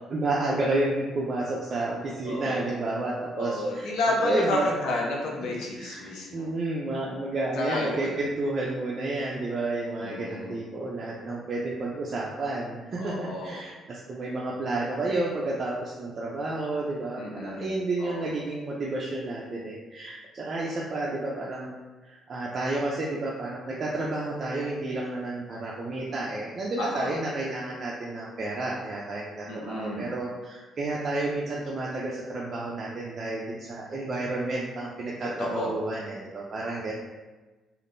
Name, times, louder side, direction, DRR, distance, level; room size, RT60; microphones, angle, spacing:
voice 1, 0.1-4.7 5.7-36.9, right 2 dB, 35° right, -4 dB, 0.4 m, -31 dB
voice 2, 2.2-2.7 3.3-6.5 7.6-8.0 10.0-10.5 13.0-13.6 17.2-17.7 18.0-18.3 26.8-27.1 29.5-30.1 35.4-35.7, left 2 dB, 80° left, -1 dB, 0.7 m, -31 dB
3.4 x 2.4 x 2.5 m, 1.2 s
cardioid pair, 145°, 0 cm